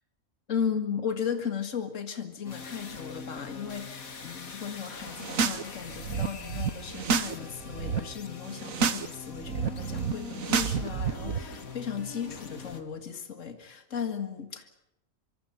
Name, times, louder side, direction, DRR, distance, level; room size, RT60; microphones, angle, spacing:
voice 1, 0.5-14.7, left 7 dB, 65° left, 7 dB, 2.2 m, -36 dB
sound 1, 2.4-12.8, left 4 dB, 85° left, 2.5 m, -43 dB
sound 2, 5.1-5.6 5.9-7.3 7.6-8.0 8.5-9.1 9.3-11.4, right 6 dB, 75° right, 1.6 m, -29 dB
25.5 x 24.5 x 5.7 m, 0.85 s
omnidirectional pair, 1.4 m